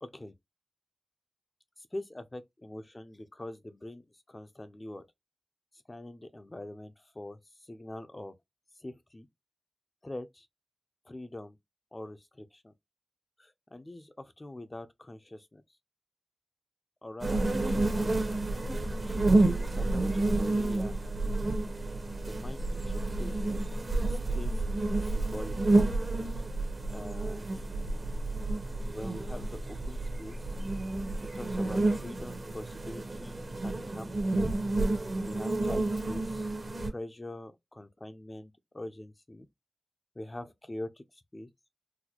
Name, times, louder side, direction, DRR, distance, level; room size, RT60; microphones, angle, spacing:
voice 1, 0.0-0.3 1.9-5.0 5.9-8.3 8.8-9.3 10.0-10.5 11.1-11.6 11.9-12.7 13.4-15.6 17.0-18.4 19.1-21.0 22.1-23.3 24.1-24.6 25.0-25.9 26.9-27.5 28.9-30.4 31.3-34.4 35.2-36.5 36.9-39.5 40.2-41.0 41.3-41.5, left 1 dB, 30° left, 0.5 m, -44 dB
sound 1, 17.2-36.9, right 2 dB, 50° right, 0.9 m, -30 dB
4.0 x 2.2 x 2.9 m
wide cardioid pair, 60°, 0 cm